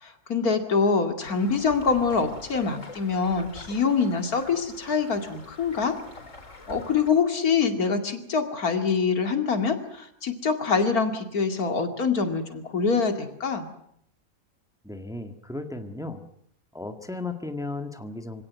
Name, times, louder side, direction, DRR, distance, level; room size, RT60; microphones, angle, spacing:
voice 1, 0.0-5.9 6.7-13.7, left 5 dB, 85° left, 6 dB, 2.9 m, -25 dB
sound 1, 1.2-7.1, left 3 dB, 60° left, 4.9 m, -45 dB
voice 2, 14.8-16.2 16.7-18.4, left 2 dB, ahead, 7 dB, 1.6 m, -35 dB
25.0 x 17.0 x 9.4 m, 0.71 s
omnidirectional pair, 1.5 m